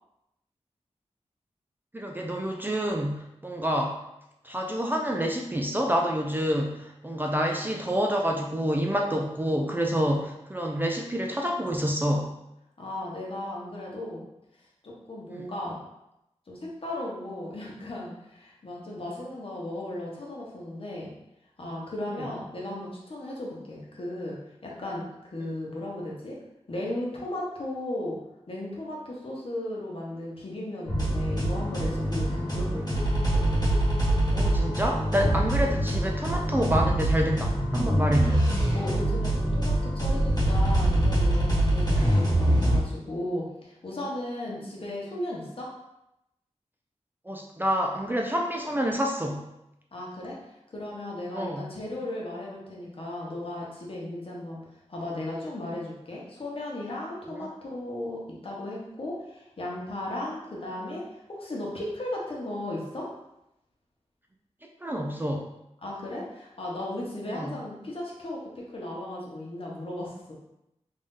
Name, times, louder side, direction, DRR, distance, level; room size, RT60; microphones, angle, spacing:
voice 1, 1.9-4.0 4.4-12.3 15.3-15.4 34.3-38.4 41.9-42.1 47.3-49.5 51.3-51.7 57.3-57.5 64.8-65.5 67.3-67.6, equal, 15° right, 1 dB, 0.4 m, -28 dB
voice 2, 12.8-14.2 14.8-15.8 16.5-21.1 21.6-26.4 26.7-28.2 28.5-33.0 33.3-33.4 38.7-45.7 49.9-50.4 50.7-54.6 54.9-63.1 65.8-70.3, left 1 dB, 50° left, -4 dB, 1.0 m, -36 dB
sound 1, 30.9-42.8, right 1 dB, 35° left, 1.3 m, -24 dB
3.3 x 2.6 x 3.7 m, 0.87 s
wide cardioid pair, 95°, 12 cm